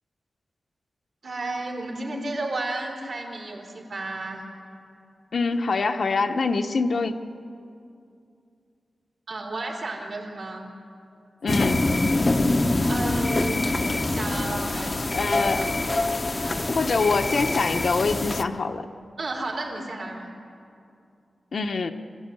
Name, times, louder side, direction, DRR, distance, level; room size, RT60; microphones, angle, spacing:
voice 1, 1.2-4.4 9.3-10.7 12.6-15.8 16.3-16.7 19.2-20.3, right 2 dB, 55° right, 0 dB, 3.9 m, -33 dB
voice 2, 5.3-7.1 11.4-11.9 15.1-15.7 16.7-18.9 21.5-21.9, left 4 dB, 60° left, 6 dB, 0.9 m, -24 dB
sound 1, 11.5-18.4, left 2 dB, 30° left, 0.8 m, -25 dB
25.0 x 14.5 x 9.6 m, 2.5 s
wide cardioid pair, 150°, 0 cm